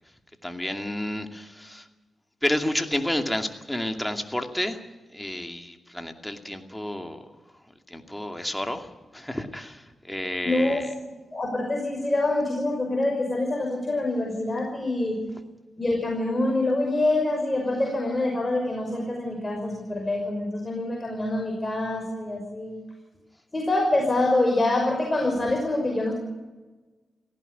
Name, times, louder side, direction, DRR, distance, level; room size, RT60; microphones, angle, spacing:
voice 1, 0.4-1.9 2.4-4.8 5.1-7.3 7.9-10.9, left 1 dB, 10° left, 5 dB, 2.5 m, -30 dB
voice 2, 10.4-10.8 11.3-15.2 15.8-22.8 23.5-26.1, left 2 dB, 25° left, 0 dB, 5.8 m, -25 dB
18.0 x 16.0 x 9.4 m, 1.2 s
cardioid pair, 65°, 0 cm